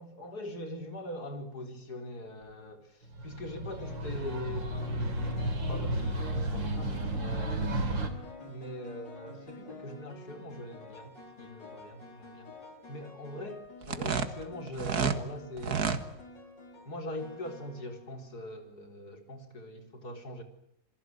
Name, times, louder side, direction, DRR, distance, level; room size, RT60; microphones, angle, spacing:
voice 1, 0.0-5.4 5.7-7.9 8.5-11.1 11.4-12.5 12.9-15.9 16.9-20.4, left 1 dB, 55° left, 6 dB, 4.6 m, -42 dB
sound 1, 2.2-2.5 3.8-18.6, left 3 dB, 70° left, 5.4 m, -49 dB
sound 2, 3.1-8.1, right 1 dB, 80° right, 4.1 m, -32 dB
sound 3, 13.8-15.2 15.6-16.0, right 6 dB, 55° right, 2.1 m, -30 dB
27.0 x 22.5 x 9.4 m, 0.71 s
omnidirectional pair, 2.0 m